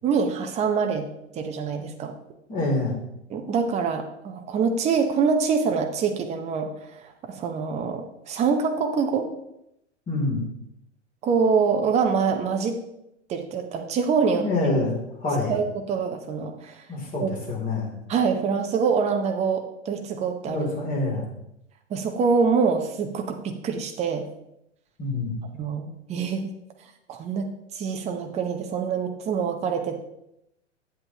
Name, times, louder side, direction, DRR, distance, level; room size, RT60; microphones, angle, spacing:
voice 1, 0.0-1.1 1.3-2.1 3.3-6.7 7.0-9.3 11.2-12.8 13.3-14.5 15.5-16.8 17.2-17.3 18.1-20.7 21.9-24.2 25.6-26.5 27.1-27.5 27.7-30.0, right 5 dB, 20° right, 5 dB, 0.8 m, -25 dB
voice 2, 2.5-3.0 10.1-10.4 14.3-15.5 16.9-17.9 20.5-21.3 25.0-25.4, left 2 dB, 25° left, -2 dB, 2.9 m, -26 dB
8.8 x 7.9 x 2.9 m, 0.83 s
figure-of-eight pair, 105°, 36 cm